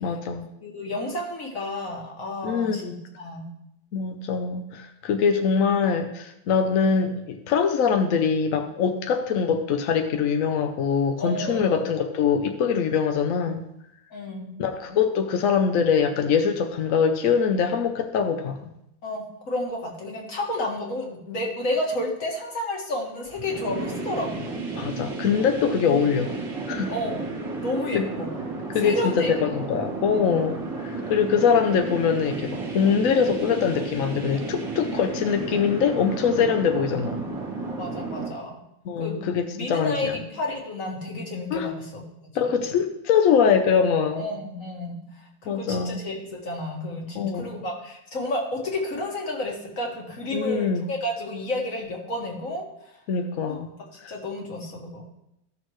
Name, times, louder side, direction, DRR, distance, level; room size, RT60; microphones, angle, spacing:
voice 1, 0.0-0.5 2.4-2.9 3.9-13.7 14.6-18.6 24.8-26.3 26.7-26.9 27.9-28.1 28.7-30.5 30.8-37.3 38.9-40.1 41.5-41.7 42.3-44.2 45.5-46.0 47.1-47.6 50.3-50.9 53.1-53.7 54.0-54.1, left 6 dB, 70° left, 6 dB, 0.7 m, -23 dB
voice 2, 0.6-3.5 11.2-11.9 14.1-14.6 19.0-24.5 26.9-27.2 27.6-28.3 28.8-29.5 30.1-30.3 36.3-36.5 37.8-38.6 39.0-39.2 39.5-42.0 42.5-42.7 44.1-52.9 53.5-53.6 54.1-55.0, left 1 dB, 45° left, -1 dB, 2.1 m, -31 dB
sound 1, 23.3-38.3, right 3 dB, 30° right, 1.6 m, -33 dB
15.5 x 6.4 x 3.1 m, 0.81 s
omnidirectional pair, 2.2 m